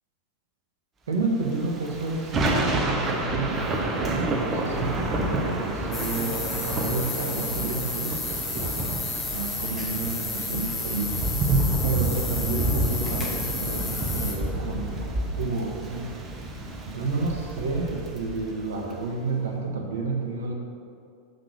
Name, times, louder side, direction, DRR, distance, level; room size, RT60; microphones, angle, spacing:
voice 1, 1.1-8.8 9.3-11.2 11.8-16.1 16.8-20.5, right 3 dB, 60° right, 1 dB, 1.3 m, -30 dB
Thunder / Rain, 1.4-19.0, right 1 dB, 20° right, 1.0 m, -29 dB
sound 1, 5.9-14.3, left 3 dB, 20° left, 1.5 m, -32 dB
6.6 x 6.0 x 6.6 m, 2.5 s
figure-of-eight pair, 90°, 0 cm